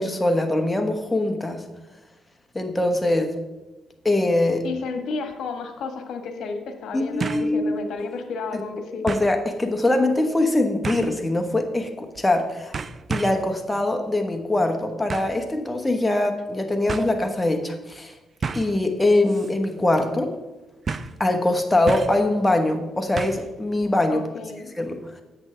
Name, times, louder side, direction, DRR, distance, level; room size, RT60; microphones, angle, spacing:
voice 1, 0.0-1.6 2.5-3.3 4.0-4.6 6.9-7.7 9.0-12.7 13.1-18.1 18.5-20.3 21.2-24.2 24.8-25.2, left 2 dB, 10° left, 4 dB, 1.1 m, -22 dB
voice 2, 4.6-9.1 24.1-24.7, left 4 dB, 75° left, 6 dB, 1.3 m, -32 dB
sound 1, 5.3-5.4 7.2-7.5 8.0-8.1 9.1-9.3 10.8-11.2 12.1-12.4 12.7-13.5 15.1-15.4 16.4-16.5 16.9-17.1 18.4-18.8 19.3-19.5 19.8-19.9 20.9-21.2 21.9-22.3 23.2-23.5 23.8-23.9, right 5 dB, 40° right, 0.5 m, -31 dB
10.0 x 8.0 x 3.3 m, 1.1 s
cardioid pair, 90°, 0 cm